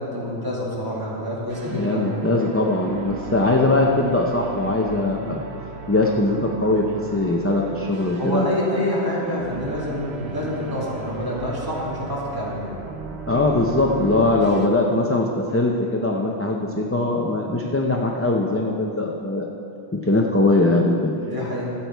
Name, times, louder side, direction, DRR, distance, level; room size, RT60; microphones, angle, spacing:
voice 1, 0.0-2.2 8.1-12.7 21.3-21.6, equal, 20° right, -6 dB, 2.3 m, -27 dB
sound 1, 1.5-14.7, right 4 dB, 80° right, 1.1 m, -36 dB
voice 2, 1.7-5.4 5.9-8.5 13.3-19.5 19.9-21.2, left 2 dB, 15° left, 0 dB, 0.5 m, -21 dB
13.5 x 8.7 x 4.6 m, 2.7 s
omnidirectional pair, 1.1 m